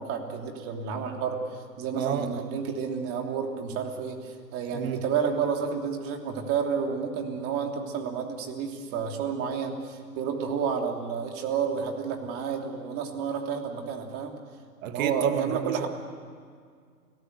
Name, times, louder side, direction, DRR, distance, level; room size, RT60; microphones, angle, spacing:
voice 1, 0.0-14.4 14.9-15.9, right 6 dB, 25° right, 3 dB, 3.0 m, -30 dB
voice 2, 2.0-2.4 4.7-5.0 14.8-15.9, right 8 dB, 55° right, 8 dB, 1.9 m, -30 dB
29.5 x 18.0 x 8.1 m, 2.1 s
hypercardioid pair, 135°, 50 cm